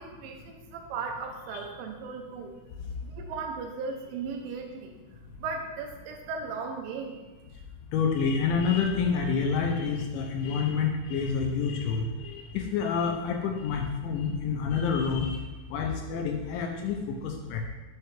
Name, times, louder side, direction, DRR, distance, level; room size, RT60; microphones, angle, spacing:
voice 1, 0.0-2.5 3.0-4.9 5.4-7.4, right 4 dB, 85° right, 2 dB, 3.1 m, -37 dB
voice 2, 7.9-17.7, left 5 dB, 85° left, 2 dB, 2.9 m, -28 dB
8.9 x 6.8 x 3.4 m, 1.2 s
omnidirectional pair, 5.7 m